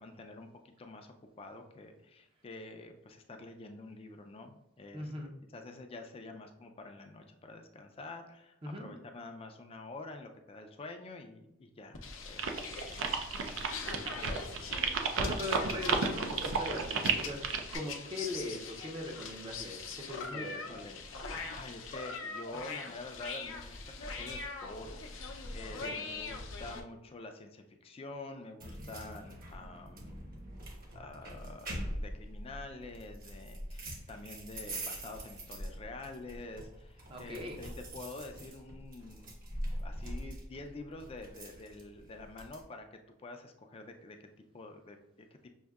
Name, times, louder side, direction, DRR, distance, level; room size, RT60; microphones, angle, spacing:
voice 1, 0.0-5.1 5.5-12.9 13.8-14.8 15.5-15.7 20.2-30.3 30.9-39.4 39.8-44.3 44.5-45.3, left 2 dB, 30° left, 5 dB, 0.4 m, -48 dB
voice 2, 4.9-5.3 8.6-8.9 15.2-17.4 17.7-20.6 25.8-26.0 37.1-37.6, left 1 dB, 25° right, 0 dB, 0.5 m, -40 dB
sound 1, 11.9-26.8, left 4 dB, 80° left, 0.6 m, -42 dB
sound 2, 12.4-17.8, right 5 dB, 80° right, 0.5 m, -32 dB
sound 3, 28.6-42.6, right 1 dB, 50° right, 1.0 m, -43 dB
6.3 x 2.6 x 2.3 m, 0.84 s
head